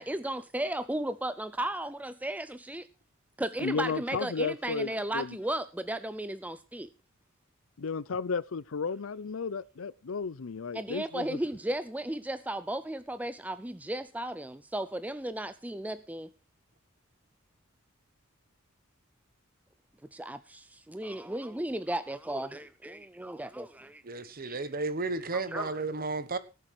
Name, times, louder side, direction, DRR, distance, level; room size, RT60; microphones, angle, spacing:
voice 1, 0.0-2.8 3.4-6.9 10.7-16.3 20.1-24.6 25.3-25.7, right 1 dB, 5° right, 0.5 m, -35 dB
voice 2, 3.6-5.3 7.8-11.2, left 5 dB, 70° left, 0.6 m, -33 dB
voice 3, 24.0-26.4, right 3 dB, 45° right, 1.3 m, -33 dB
18.0 x 7.5 x 4.8 m
head